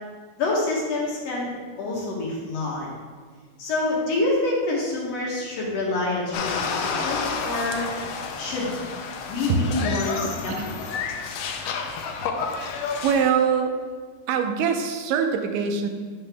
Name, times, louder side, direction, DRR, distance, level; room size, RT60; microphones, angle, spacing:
voice 1, 0.4-1.5 1.8-2.9 3.6-7.8 8.4-8.8 9.3-10.5 10.8-10.9, left 2 dB, 65° left, -3 dB, 1.9 m, -27 dB
sound 1, 6.3-13.3, left 5 dB, 85° left, 1.4 m, -30 dB
voice 2, 9.5-10.0 10.5-10.7 12.2-12.4 13.0-13.7 14.3-15.9, right 6 dB, 90° right, 5 dB, 2.3 m, -23 dB
8.5 x 5.7 x 3.4 m, 1.5 s
omnidirectional pair, 3.7 m